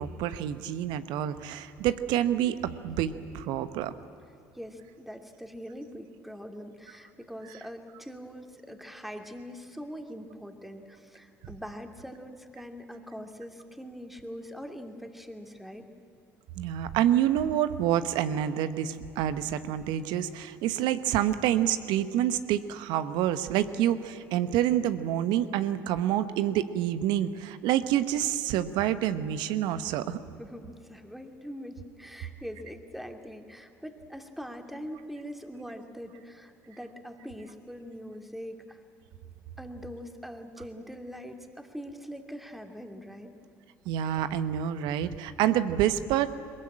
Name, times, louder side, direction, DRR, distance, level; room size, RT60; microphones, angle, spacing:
voice 1, 0.0-3.9 16.6-30.2 43.9-46.3, right 11 dB, 70° right, 12 dB, 1.1 m, -27 dB
voice 2, 4.5-15.8 30.4-38.8 39.6-43.3, equal, ahead, 5 dB, 2.7 m, -42 dB
22.5 x 20.5 x 8.9 m, 2.7 s
hypercardioid pair, 60°, 8 cm